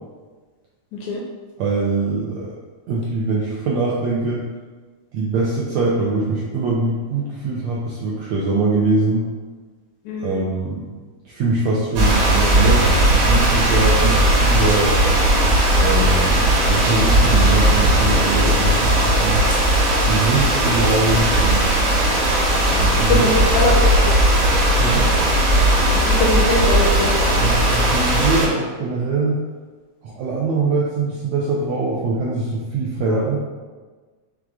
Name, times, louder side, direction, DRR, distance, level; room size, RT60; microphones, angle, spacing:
voice 1, 0.9-1.2 10.0-10.4 22.7-24.0 25.9-27.4 33.0-33.2, left 2 dB, 80° left, -2 dB, 1.7 m, -23 dB
voice 2, 1.6-2.5 2.9-4.4 5.1-9.3 10.2-10.9 11.2-15.0 15.8-19.4 20.1-21.7 22.7-23.3 24.8-25.1 27.4-29.4 30.0-33.4, right 3 dB, 85° right, -5 dB, 1.5 m, -22 dB
sound 1, 12.0-28.5, right 1 dB, 70° right, 2.3 m, -17 dB
6.0 x 2.4 x 3.5 m, 1.3 s
omnidirectional pair, 3.7 m